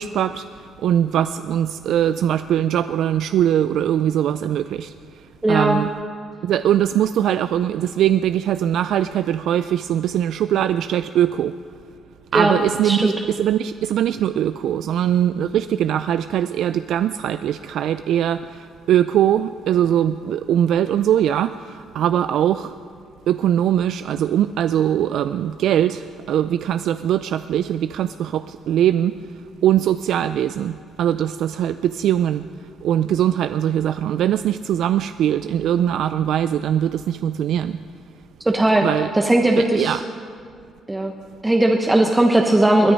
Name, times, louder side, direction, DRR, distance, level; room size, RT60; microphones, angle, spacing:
voice 1, 0.0-5.9 6.4-11.6 12.3-22.8 23.3-37.8 38.8-39.1 39.6-40.0, right 10 dB, 75° right, 11 dB, 0.3 m, -21 dB
voice 2, 5.4-5.8 12.3-12.5 12.8-13.1 38.4-38.8 39.2-40.0 40.9-41.1 41.4-42.9, right 1 dB, 10° right, 2 dB, 1.0 m, -17 dB
21.0 x 10.0 x 5.3 m, 2.3 s
cardioid pair, 110°, 0 cm